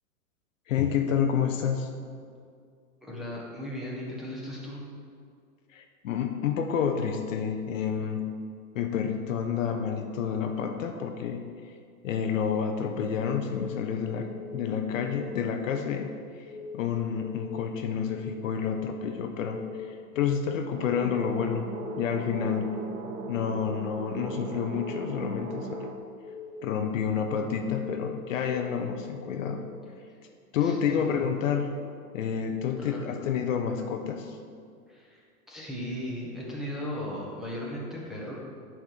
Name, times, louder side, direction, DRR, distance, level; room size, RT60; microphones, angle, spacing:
voice 1, 0.7-1.9 5.7-8.3 8.7-11.4 12.0-16.1 16.7-22.7 23.3-25.9 26.6-29.6 30.5-31.7 32.1-34.4, left 7 dB, 55° left, 5 dB, 0.9 m, -29 dB
voice 2, 3.0-4.8 30.6-31.1 32.8-33.0 34.9-38.3, equal, ahead, -6 dB, 1.2 m, -37 dB
Keyboard (musical) / Alarm, 13.5-13.8 14.2-14.6 15.0-15.3 15.7-16.1 16.5-16.8 17.2-17.6 18.0-18.3 18.7-19.1 19.5-19.8 20.2-20.6 21.0-21.4 21.7-22.1 22.5-22.9 23.2-23.6 24.0-24.4 24.7-25.1 25.5-25.9 26.2-26.6 27.0-27.4 27.7-28.1 28.5-28.9 29.2-29.6, left 5 dB, 20° left, 0.6 m, -42 dB
sound 1, 20.7-26.0, right 4 dB, 60° right, 1.1 m, -38 dB
9.7 x 4.6 x 6.7 m, 2.2 s
hypercardioid pair, 145°, 46 cm